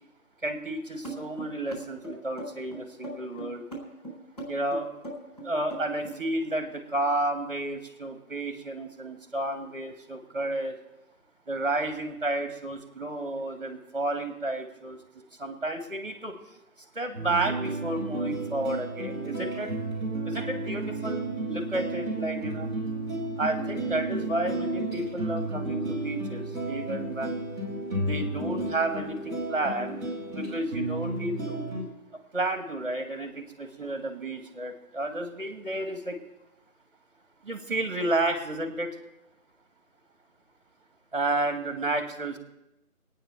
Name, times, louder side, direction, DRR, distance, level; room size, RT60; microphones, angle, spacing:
voice 1, 0.4-3.7 4.5-4.9 5.4-10.8 11.5-15.0 15.4-16.4 16.9-19.7 20.3-22.7 23.4-27.4 27.9-30.0 30.3-31.7 32.3-36.2 37.4-39.0 41.1-42.4, right 2 dB, 35° right, 6 dB, 2.0 m, -31 dB
sound 1, 1.0-6.2, right 1 dB, 25° left, 4.6 m, -39 dB
sound 2, 17.1-31.8, right 2 dB, 10° left, 3.2 m, -32 dB
23.5 x 9.3 x 4.6 m, 0.92 s
figure-of-eight pair, 165°, 44 cm